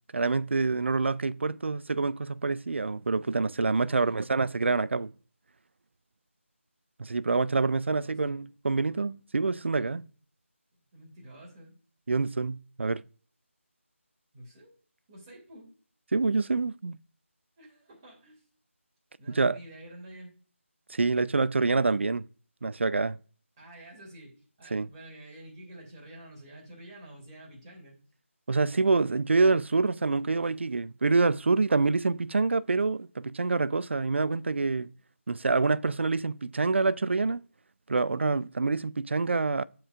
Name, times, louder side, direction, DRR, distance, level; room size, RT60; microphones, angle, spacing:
voice 1, 0.1-5.1 7.0-10.0 12.1-13.0 16.1-17.0 19.3-19.6 20.9-22.2 22.6-23.2 24.7-24.9 28.5-34.9 35.3-37.4 37.9-39.6, right 3 dB, 60° right, 0.4 m, -26 dB
voice 2, 3.8-4.4 7.6-8.4 10.9-11.8 14.3-14.8 15.1-15.7 17.6-18.4 19.2-20.3 23.6-27.9, right 1 dB, 20° right, 2.7 m, -49 dB
13.5 x 4.5 x 2.4 m
figure-of-eight pair, 165°, 7 cm